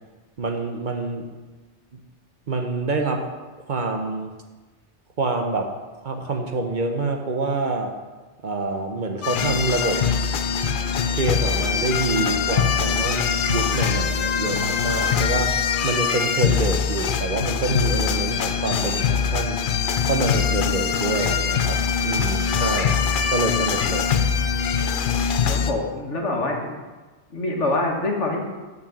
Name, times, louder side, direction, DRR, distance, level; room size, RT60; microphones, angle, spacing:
voice 1, 0.4-1.3 1.9-2.0 2.5-3.3 3.7-4.3 5.2-5.7 6.0-8.0 8.4-10.0 11.1-19.6 20.1-22.9 23.3-24.1, right 3 dB, 50° right, 4 dB, 0.8 m, -26 dB
sound 1, 9.2-25.7, left 6 dB, 60° left, 0.6 m, -23 dB
voice 2, 25.5-26.8 27.3-28.4, left 2 dB, 85° left, 0 dB, 1.7 m, -25 dB
6.6 x 5.8 x 7.1 m, 1.3 s
omnidirectional pair, 1.2 m